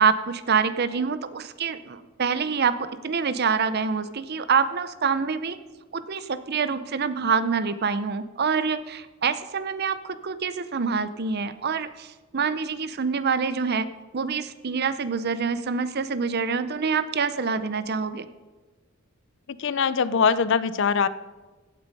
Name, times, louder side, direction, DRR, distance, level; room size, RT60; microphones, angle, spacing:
voice 1, 0.0-5.6 5.9-18.3, right 5 dB, 50° right, 13 dB, 0.6 m, -26 dB
voice 2, 19.5-21.1, left 6 dB, 60° left, 16 dB, 0.5 m, -22 dB
15.5 x 8.5 x 5.3 m, 1.3 s
head